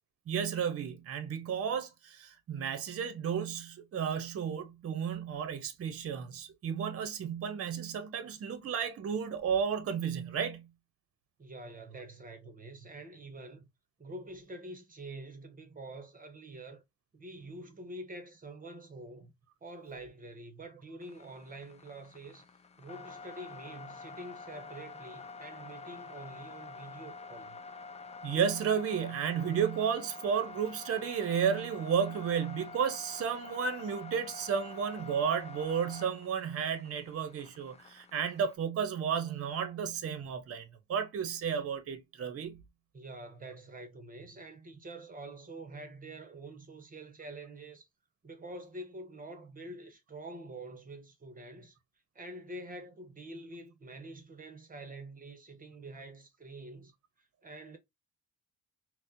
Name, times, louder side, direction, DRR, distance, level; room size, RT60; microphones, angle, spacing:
voice 1, 0.3-10.7 28.2-42.6, right 7 dB, 50° right, 0.7 m, -33 dB
voice 2, 11.4-13.6 14.0-16.8 17.1-19.3 19.6-22.5 22.8-27.6 42.9-47.9 48.2-51.8 52.1-56.9 57.2-57.8, right 2 dB, 30° right, 0.8 m, -46 dB
sound 1, 21.0-38.6, left 4 dB, 20° left, 0.4 m, -48 dB
4.1 x 2.1 x 2.6 m
cardioid pair, 90°, 30 cm